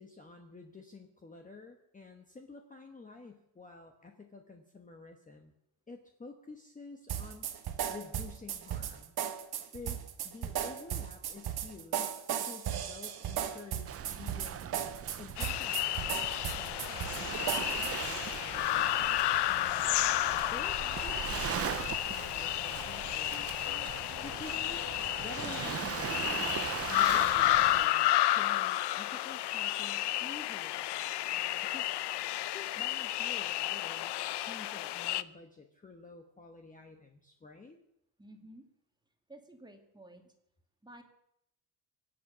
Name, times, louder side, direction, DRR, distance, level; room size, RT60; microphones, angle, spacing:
voice 1, 0.0-5.5 5.9-7.5 7.9-9.2 9.7-14.8 15.2-16.0 16.4-19.8 20.3-23.5 24.2-30.9 31.3-31.9 32.5-37.8, left 3 dB, 15° left, 3 dB, 1.3 m, -50 dB
sound 1, 7.1-18.1, right 9 dB, 50° right, 1.5 m, -36 dB
Waves surf, 13.9-27.9, right 9 dB, 30° right, 0.5 m, -40 dB
sound 2, 15.4-35.2, left 15 dB, 55° left, 0.7 m, -31 dB
voice 2, 38.2-38.6 39.3-40.3 40.8-41.0, right 1 dB, 10° right, 4 dB, 2.1 m, -52 dB
24.5 x 8.4 x 6.3 m, 0.79 s
cardioid pair, 135°, 49 cm